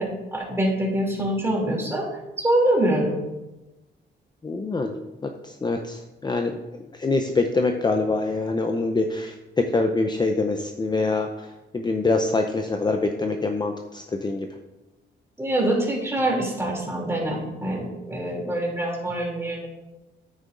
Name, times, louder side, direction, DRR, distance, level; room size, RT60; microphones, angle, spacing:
voice 1, 0.0-2.1 2.4-3.2 15.4-19.7, right 1 dB, 15° right, -1 dB, 2.7 m, -24 dB
voice 2, 4.4-5.0 5.2-6.6 7.0-11.5 11.7-14.5, left 3 dB, 20° left, 5 dB, 0.6 m, -25 dB
9.3 x 8.4 x 2.5 m, 1.0 s
cardioid pair, 90°, 20 cm